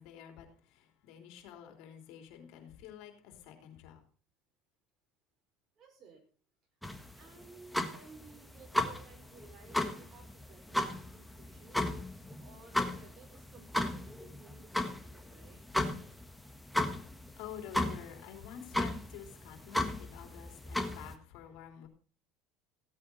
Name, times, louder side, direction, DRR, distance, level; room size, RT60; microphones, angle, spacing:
voice 1, 0.0-4.0 17.1-21.9, left 9 dB, 70° left, 3.5 m, -49 dB
voice 2, 5.8-6.2 7.1-11.8 12.4-15.6, right 4 dB, 40° right, 5.5 m, -57 dB
sound 1, 6.8-21.1, left 1 dB, 5° left, 1.5 m, -35 dB
16.0 x 8.6 x 4.2 m
supercardioid pair, 110°, 0 cm